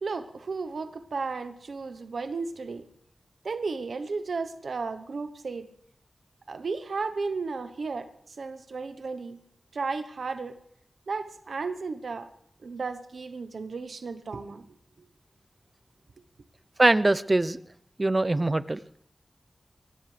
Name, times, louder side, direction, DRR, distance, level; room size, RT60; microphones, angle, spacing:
voice 1, 0.0-2.8 3.4-5.7 6.5-9.4 9.7-10.6 11.1-12.3 12.6-15.1, right 4 dB, 85° right, 9 dB, 1.1 m, -34 dB
voice 2, 16.8-17.6 18.0-18.8, right 2 dB, 30° right, 16 dB, 0.7 m, -22 dB
24.0 x 16.5 x 3.4 m, 0.72 s
wide cardioid pair, 70°, 0 cm